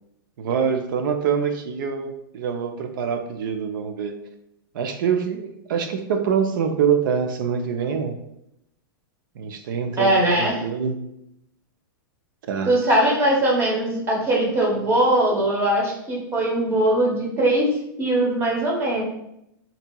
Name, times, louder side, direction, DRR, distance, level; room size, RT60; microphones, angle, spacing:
voice 1, 0.4-4.1 4.7-8.1 9.4-11.0 12.5-12.7, right 7 dB, 65° right, 6 dB, 0.4 m, -25 dB
voice 2, 10.0-10.6 12.7-19.0, right 1 dB, 20° right, -3 dB, 0.8 m, -21 dB
2.7 x 2.7 x 2.2 m, 0.79 s
hypercardioid pair, 140°, 12 cm